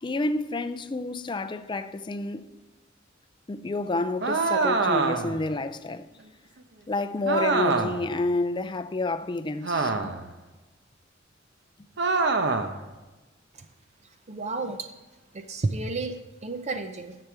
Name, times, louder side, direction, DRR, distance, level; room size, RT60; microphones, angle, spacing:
voice 1, 0.0-2.5 3.5-6.1 6.9-10.1, left 2 dB, 25° left, 0.4 m, -29 dB
sound 1, 4.2-5.4 7.2-8.1 9.6-10.3 12.0-12.8, right 4 dB, 65° right, 0.8 m, -25 dB
voice 2, 14.3-14.9 15.3-17.2, right 3 dB, 35° right, 0.6 m, -32 dB
10.5 x 6.8 x 4.5 m
head